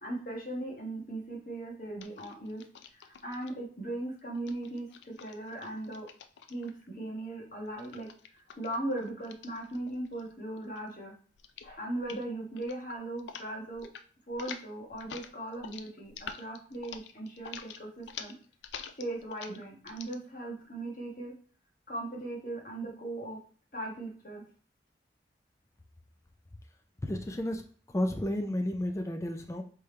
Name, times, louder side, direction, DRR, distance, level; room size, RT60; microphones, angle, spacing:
voice 1, 0.0-2.6 3.2-6.1 6.5-8.1 8.6-11.1 11.6-13.8 14.3-18.3 19.0-21.3 21.9-23.4 23.7-24.4, right 1 dB, 50° left, -2 dB, 1.4 m, -38 dB
sound 1, 2.0-3.5 4.3-6.9 7.8-10.3 10.6-11.0 11.4-11.7 12.0-12.3 12.6-13.5 13.7-14.0 14.3-20.2, left 7 dB, 90° left, 0.4 m, -47 dB
voice 2, 27.0-29.6, left 1 dB, 15° left, 5 dB, 0.4 m, -32 dB
3.4 x 3.4 x 4.3 m, 0.43 s
head